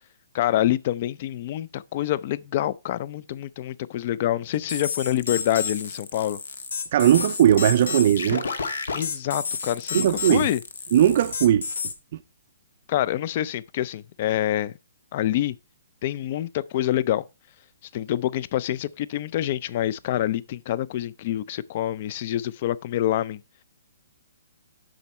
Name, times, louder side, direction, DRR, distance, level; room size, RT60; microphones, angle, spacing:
voice 1, 0.3-6.4 8.9-10.6 12.9-14.7 15.1-15.6 16.0-17.2 17.9-23.4, left 12 dB, 40° left, 0.4 m, -26 dB
sound 1, 4.7-11.9, left 5 dB, 80° left, 1.4 m, -31 dB
voice 2, 6.9-8.5 9.9-10.5 10.9-11.7, right 10 dB, 50° right, 0.4 m, -18 dB
7.8 x 6.1 x 4.2 m
hypercardioid pair, 155°, 0 cm